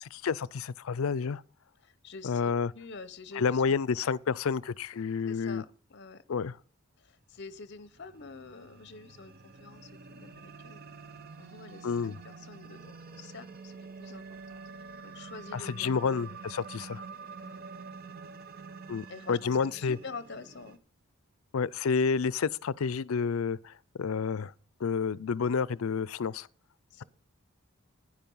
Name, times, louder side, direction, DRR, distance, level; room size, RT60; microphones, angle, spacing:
voice 1, 0.0-1.4 2.2-2.7 3.4-5.6 6.3-6.6 11.8-12.1 15.5-17.0 18.9-20.0 21.5-24.5 24.8-26.5, left 5 dB, 80° left, 0.4 m, -30 dB
voice 2, 1.8-3.8 4.9-6.2 7.0-10.8 11.4-14.6 15.0-15.9 17.4-17.6 19.1-20.8 26.9-27.0, left 4 dB, 55° left, 0.7 m, -47 dB
sound 1, 7.7-20.8, right 5 dB, 45° right, 0.7 m, -47 dB
10.5 x 10.0 x 5.4 m
head